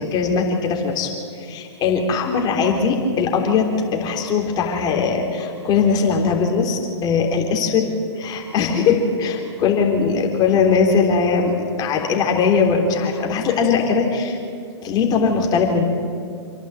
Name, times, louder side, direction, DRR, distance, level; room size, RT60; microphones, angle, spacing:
voice 1, 0.0-7.9 8.2-14.4 14.8-15.8, left 5 dB, 30° left, 1 dB, 3.5 m, -20 dB
27.5 x 11.0 x 9.0 m, 2.2 s
hypercardioid pair, 120°, 15 cm